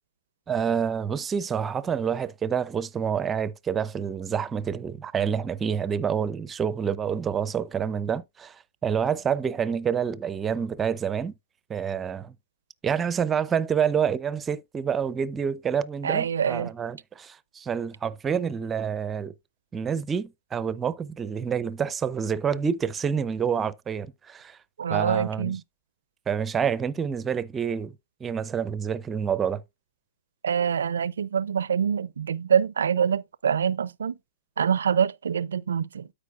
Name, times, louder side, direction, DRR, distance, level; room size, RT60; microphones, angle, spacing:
voice 1, 0.5-11.3 11.7-12.3 12.8-19.3 19.7-24.6 24.9-25.5 26.3-27.9 28.2-29.6, right 7 dB, 15° right, 0.6 m, -28 dB
voice 2, 16.0-16.7 24.8-25.6 30.4-34.2 34.6-36.1, right 7 dB, 80° right, 0.5 m, -25 dB
13.0 x 5.0 x 2.4 m
hypercardioid pair, 130°, 0 cm